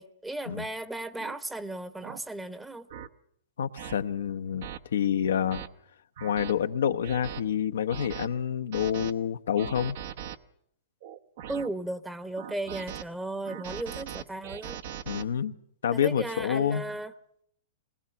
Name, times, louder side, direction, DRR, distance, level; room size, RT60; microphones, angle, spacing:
voice 1, 0.0-2.9 11.5-14.8 15.9-17.1, right 2 dB, 5° right, 13 dB, 0.9 m, -35 dB
sound 1, 1.2-1.4 2.0-2.2 2.9-3.1 3.8-4.0 4.6-4.8 5.3-5.7 6.2-6.5 7.0-7.4 7.9-8.3 8.7-9.1 9.6-10.4 11.0-11.7 12.4-13.0 13.5-15.2, right 9 dB, 60° right, 0.9 m, -40 dB
voice 2, 3.6-5.6 6.2-10.0 15.1-15.5 15.8-16.9, left 8 dB, 80° left, 9 dB, 0.8 m, -28 dB
20.5 x 20.0 x 6.9 m, 0.70 s
hypercardioid pair, 125°, 0 cm